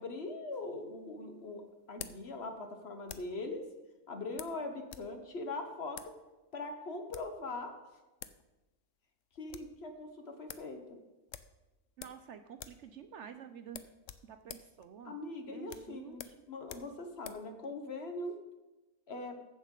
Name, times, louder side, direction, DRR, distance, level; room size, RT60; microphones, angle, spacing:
voice 1, 0.0-1.6 1.9-3.6 4.1-6.0 6.5-7.7 9.4-11.0 15.0-16.2 16.5-18.4 19.1-19.4, left 2 dB, 50° left, 5 dB, 1.3 m, -41 dB
sound 1, 0.5-3.4 4.4-5.1 5.4-5.5 5.9-6.2 6.9-7.4 7.9-8.4 8.7-8.8 9.2-9.8 10.1-10.2 10.5-10.7 11.3-12.3 12.5-12.9 13.1-13.3 13.7-17.5, left 10 dB, 70° left, 0.9 m, -49 dB
voice 2, 12.0-13.9 14.2-15.2 15.4-16.3, right 8 dB, 65° right, 9 dB, 0.8 m, -50 dB
15.0 x 7.3 x 3.8 m, 1.1 s
omnidirectional pair, 1.5 m